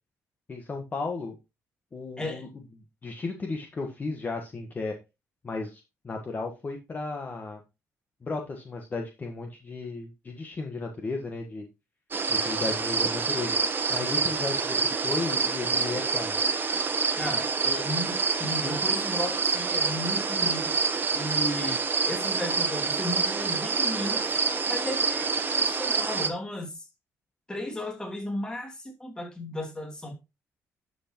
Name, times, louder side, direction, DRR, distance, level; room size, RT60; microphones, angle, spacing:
voice 1, 0.5-1.3 1.9-2.5 3.0-4.9 5.4-7.6 8.2-11.6 12.3-13.6 13.9-16.4, left 3 dB, 30° left, 1.5 m, -34 dB
sound 1, 12.1-26.3, right 4 dB, 35° right, 1.2 m, -27 dB
voice 2, 17.2-20.8 21.1-24.4 24.7-26.9 27.5-30.1, left 1 dB, 15° left, 2.6 m, -35 dB
11.0 x 5.9 x 3.1 m
cardioid pair, 105°, 6 cm